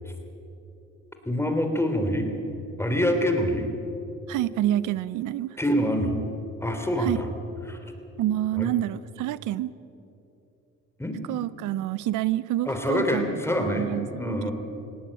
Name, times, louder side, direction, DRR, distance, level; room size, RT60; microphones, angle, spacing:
voice 1, 1.2-2.3 2.8-3.7 5.6-6.2 6.6-7.3 7.7-7.8 8.6-8.7 11.0-11.2 12.6-13.9 14.2-14.5, equal, 10° left, 5 dB, 3.2 m, -25 dB
voice 2, 4.3-5.6 7.0-7.2 8.2-9.7 11.3-14.5, right 13 dB, 90° right, 18 dB, 0.6 m, -28 dB
19.0 x 17.5 x 8.5 m, 2.9 s
cardioid pair, 90°, 30 cm